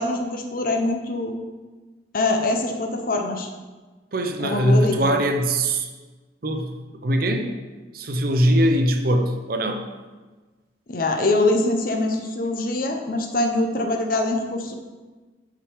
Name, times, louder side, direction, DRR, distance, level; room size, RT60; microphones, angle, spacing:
voice 1, 0.0-1.3 2.1-3.5 4.4-5.1 10.9-14.7, left 2 dB, 50° left, 4 dB, 0.8 m, -23 dB
voice 2, 4.1-5.9 6.4-7.5 7.9-9.9, right 1 dB, 50° right, 5 dB, 0.7 m, -21 dB
6.1 x 4.9 x 4.9 m, 1.3 s
head